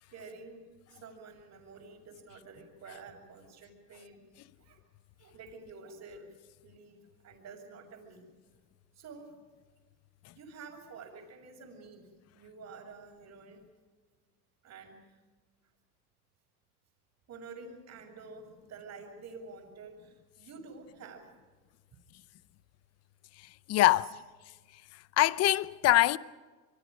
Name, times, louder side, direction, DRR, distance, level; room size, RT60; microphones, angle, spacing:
voice 1, 0.1-0.6 0.9-4.2 4.6-4.8 5.2-6.4 6.6-8.3 8.9-9.3 10.3-12.1 12.3-13.7 14.6-15.2 17.3-21.3 23.9-24.0, right 4 dB, 35° right, 6.1 m, -49 dB
voice 2, 23.7-24.1 25.2-26.2, left 16 dB, 35° left, 0.8 m, -23 dB
28.0 x 23.5 x 5.1 m
supercardioid pair, 115°, 46 cm